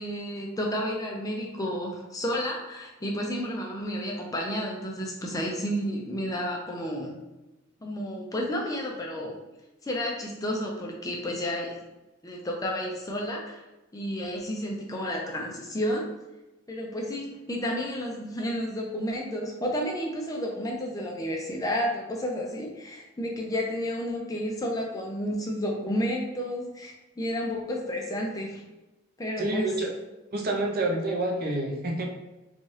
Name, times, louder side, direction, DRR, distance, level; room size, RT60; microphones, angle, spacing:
voice 1, 0.0-7.1 7.8-9.4 9.8-11.8 12.2-13.6 13.9-16.1 16.7-28.6 29.2-29.7, equal, 15° left, -1 dB, 0.5 m, -31 dB
voice 2, 29.4-29.9 30.3-32.0, right 2 dB, 45° right, 0 dB, 0.6 m, -28 dB
4.0 x 2.3 x 3.2 m, 1.0 s
head